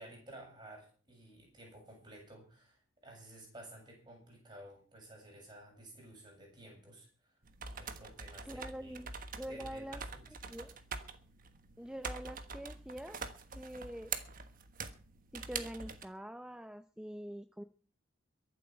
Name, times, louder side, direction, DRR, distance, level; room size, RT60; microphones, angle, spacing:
voice 1, 0.0-7.4 7.7-9.0 9.4-10.2, right 1 dB, 20° right, 0 dB, 7.3 m, -54 dB
sound 1, 7.4-16.0, right 5 dB, 40° right, 1.4 m, -45 dB
voice 2, 8.4-9.1 9.4-10.0 10.5-10.8 11.8-13.2 13.5-14.1 15.3-17.6, equal, 5° right, 9 dB, 0.6 m, -45 dB
23.0 x 8.0 x 5.8 m, 0.41 s
head